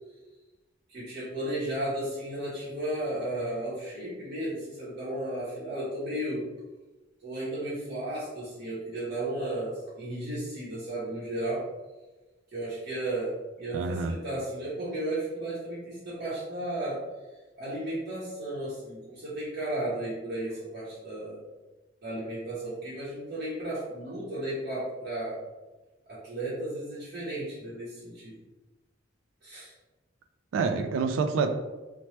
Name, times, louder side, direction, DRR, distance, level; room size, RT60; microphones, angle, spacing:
voice 1, 0.9-6.5 7.2-11.7 12.5-17.0 17.6-21.4 22.0-25.4 26.1-28.4 29.4-29.7, right 1 dB, 50° right, -10 dB, 0.8 m, -34 dB
voice 2, 13.7-14.1 30.5-31.5, right 5 dB, 90° right, 7 dB, 0.3 m, -27 dB
2.8 x 2.1 x 3.1 m, 1.1 s
head